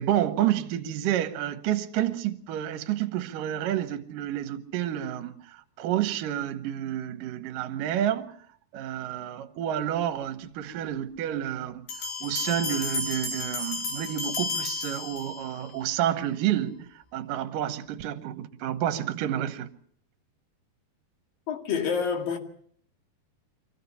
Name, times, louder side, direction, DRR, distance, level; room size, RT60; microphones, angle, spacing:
voice 1, 0.0-8.3 8.7-19.7, right 11 dB, 70° right, 2.4 m, -29 dB
sound 1, 11.9-15.7, left 3 dB, 90° left, 5.4 m, -32 dB
voice 2, 21.5-22.4, left 6 dB, 65° left, 3.9 m, -27 dB
24.0 x 16.0 x 7.0 m
omnidirectional pair, 4.4 m